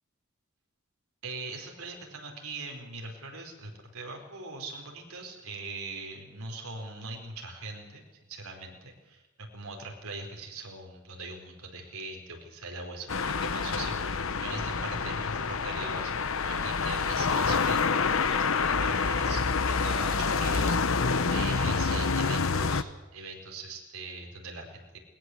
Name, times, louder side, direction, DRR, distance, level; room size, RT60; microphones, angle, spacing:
voice 1, 1.2-25.0, right 3 dB, 80° right, 2 dB, 4.7 m, -41 dB
sound 1, 13.1-22.8, left 4 dB, 65° left, 0.9 m, -27 dB
20.5 x 20.0 x 8.0 m, 1.1 s
head